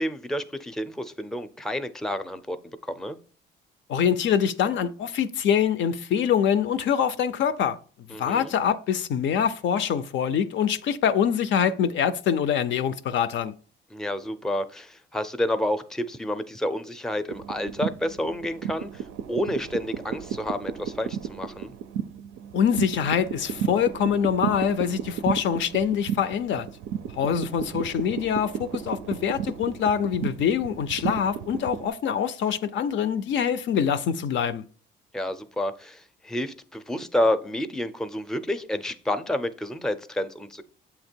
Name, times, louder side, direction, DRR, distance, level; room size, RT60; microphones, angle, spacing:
voice 1, 0.0-2.6 2.8-3.2 8.1-8.5 13.9-19.0 19.3-21.7 35.1-40.6, left 1 dB, 5° left, 0.4 m, -29 dB
voice 2, 3.9-7.8 8.2-13.5 22.5-26.7 27.1-34.6, left 8 dB, 70° left, 0.4 m, -24 dB
sound 1, 17.3-31.9, right 8 dB, 90° right, 0.4 m, -33 dB
7.5 x 2.9 x 4.4 m
cardioid pair, 90°, 20 cm